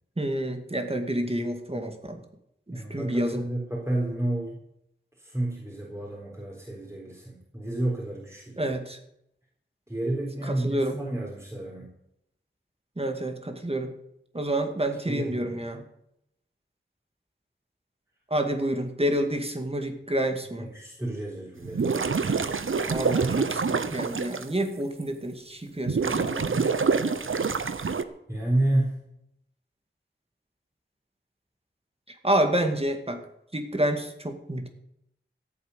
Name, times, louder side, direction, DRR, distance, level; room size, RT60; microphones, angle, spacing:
voice 1, 0.2-2.2 2.7-3.5 8.6-9.0 10.4-11.0 13.0-13.9 14.3-15.8 18.3-20.7 22.9-26.5 32.1-33.2 33.5-34.7, right 1 dB, 30° right, 6 dB, 2.2 m, -28 dB
voice 2, 2.7-4.6 5.2-8.7 9.9-11.9 15.0-15.6 20.6-22.3 26.4-26.8 28.3-29.1, right 1 dB, 15° right, -3 dB, 3.9 m, -31 dB
sound 1, 21.6-24.4 25.0-25.1 25.9-28.0, right 5 dB, 85° right, 0.9 m, -26 dB
14.5 x 8.6 x 8.1 m, 0.79 s
wide cardioid pair, 65°, 20 cm